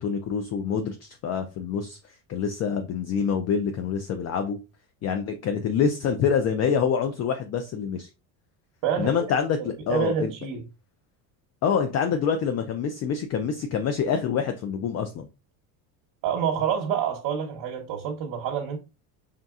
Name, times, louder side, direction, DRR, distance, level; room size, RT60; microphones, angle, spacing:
voice 1, 0.0-2.0 2.3-4.6 5.0-8.1 9.0-10.3 11.6-15.3, left 6 dB, 35° left, 0.4 m, -26 dB
voice 2, 9.9-10.6 16.2-18.8, right 8 dB, 55° right, 1.0 m, -27 dB
4.1 x 3.7 x 2.3 m
supercardioid pair, 120°, 46 cm